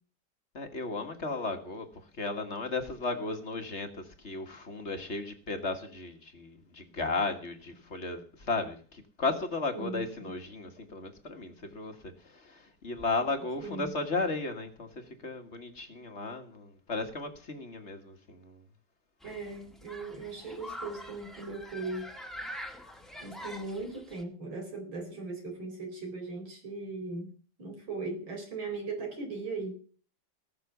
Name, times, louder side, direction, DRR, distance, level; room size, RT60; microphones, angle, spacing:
voice 1, 0.5-1.9 2.2-12.0 12.2-14.9 15.2-18.6, left 3 dB, 35° left, 6 dB, 1.8 m, -35 dB
voice 2, 9.7-10.3 13.6-13.9 19.2-22.1 23.2-27.3 27.6-29.7, right 3 dB, 80° right, 3 dB, 5.2 m, -38 dB
Human group actions, 19.2-24.2, left 1 dB, ahead, 1.7 m, -45 dB
18.5 x 6.8 x 7.0 m, 0.41 s
omnidirectional pair, 2.1 m